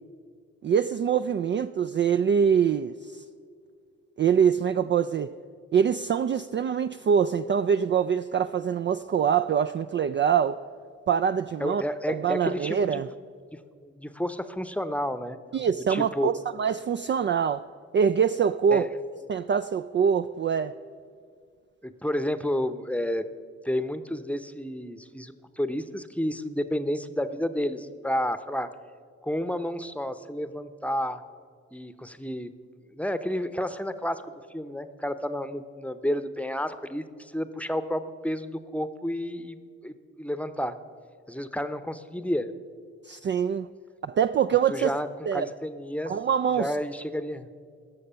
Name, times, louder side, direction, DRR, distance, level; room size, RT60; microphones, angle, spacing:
voice 1, 0.6-3.2 4.2-5.3 5.7-10.6 11.1-11.8 12.1-13.1 15.5-17.7 17.9-18.9 19.3-20.7 43.1-43.7 44.0-44.9 45.3-45.5 46.1-46.7, right 7 dB, 35° right, 0.4 m, -24 dB
voice 2, 11.6-13.0 13.8-15.4 15.9-16.3 18.7-18.9 21.8-23.2 23.6-28.7 29.2-31.2 31.7-32.5 32.9-40.8 41.3-42.5 44.7-46.1 46.6-47.5, equal, 5° left, 0.8 m, -31 dB
17.5 x 6.7 x 5.6 m
hypercardioid pair, 45°, 35 cm